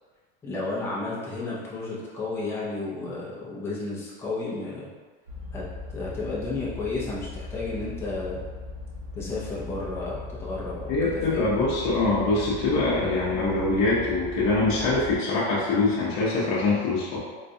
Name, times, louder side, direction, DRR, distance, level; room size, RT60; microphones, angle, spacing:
voice 1, 0.4-4.9 5.5-5.7 5.9-8.4 9.1-11.6, left 3 dB, 10° left, -7 dB, 0.5 m, -32 dB
sound 1, 5.3-15.2, left 3 dB, 60° right, 0.9 m, -39 dB
voice 2, 10.9-17.2, left 3 dB, 40° left, -8 dB, 0.7 m, -24 dB
3.9 x 2.2 x 2.6 m, 1.5 s
supercardioid pair, 155°, 31 cm